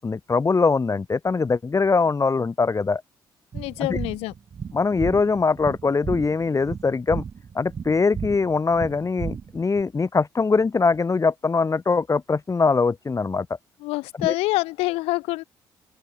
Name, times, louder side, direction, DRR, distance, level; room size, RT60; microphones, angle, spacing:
voice 1, 0.0-3.0 3.8-4.0 4.7-7.2 7.6-13.5 14.2-14.3, left 4 dB, 30° left, 1.9 m, -22 dB
voice 2, 3.5-4.3 13.8-15.4, left 21 dB, 75° left, 2.4 m, -26 dB
sound 1, 3.5-9.8, right 6 dB, 40° right, 1.2 m, -34 dB
open air
hypercardioid pair, 50°, 10 cm